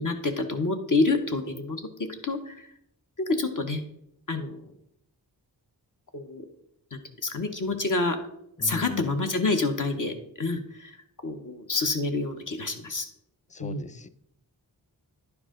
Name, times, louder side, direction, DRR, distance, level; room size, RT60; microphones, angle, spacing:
voice 1, 0.0-1.8 2.2-2.6 3.3-3.8 4.3-4.6 6.1-6.4 6.9-8.2 8.6-10.9 11.2-13.0 13.6-13.9, left 3 dB, 45° left, 5 dB, 1.0 m, -28 dB
voice 2, 8.6-9.1 13.5-14.1, left 5 dB, 20° left, 14 dB, 0.3 m, -38 dB
10.5 x 4.8 x 3.7 m, 0.74 s
wide cardioid pair, 70°, 42 cm